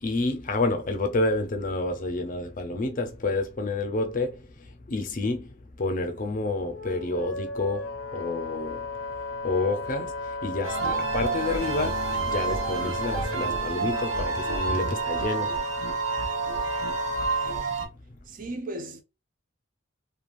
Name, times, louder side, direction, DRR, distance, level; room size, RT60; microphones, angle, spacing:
voice 1, 0.0-4.5 4.9-8.9 9.4-10.1 10.4-15.6, left 2 dB, 40° left, 0.6 m, -29 dB
Wind instrument woodwind instrument, 6.7-17.6, left 3 dB, 90° left, 0.4 m, -35 dB
sound 1, 10.6-17.9, right 5 dB, 75° right, 0.8 m, -29 dB
voice 2, 18.3-19.0, right 1 dB, 45° right, 0.6 m, -35 dB
3.1 x 2.3 x 2.5 m
head